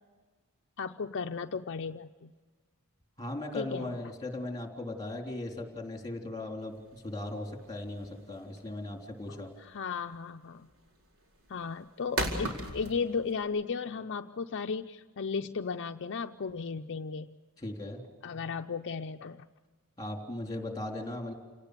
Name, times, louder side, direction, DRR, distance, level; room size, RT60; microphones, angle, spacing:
voice 1, 0.8-2.3 3.5-3.9 9.3-10.7 11.5-17.4 18.2-19.5, left 5 dB, 55° left, 6 dB, 0.6 m, -35 dB
voice 2, 3.2-9.5 17.6-18.0 20.0-21.3, left 2 dB, 15° left, 2 dB, 3.6 m, -38 dB
sound 1, 6.6-13.4, right 1 dB, 65° right, 4.5 m, -38 dB
28.5 x 18.5 x 6.7 m, 1.4 s
head